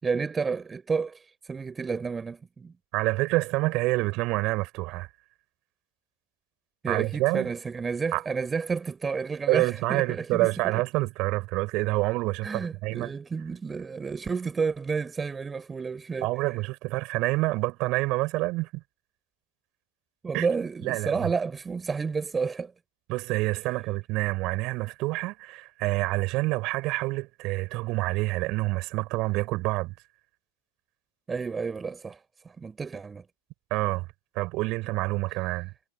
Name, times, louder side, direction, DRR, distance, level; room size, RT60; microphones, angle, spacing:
voice 1, 0.0-2.7 6.8-10.8 12.4-16.3 20.2-22.7 31.3-32.2 32.6-33.2, right 5 dB, 15° right, 4.3 m, -31 dB
voice 2, 2.9-5.1 6.9-7.5 8.1-8.2 9.5-13.1 16.2-18.8 20.3-20.5 20.8-21.3 23.1-29.9 33.7-34.1 34.4-35.7, right 21 dB, 40° right, 7.0 m, -27 dB
figure-of-eight pair, 90°, 0 cm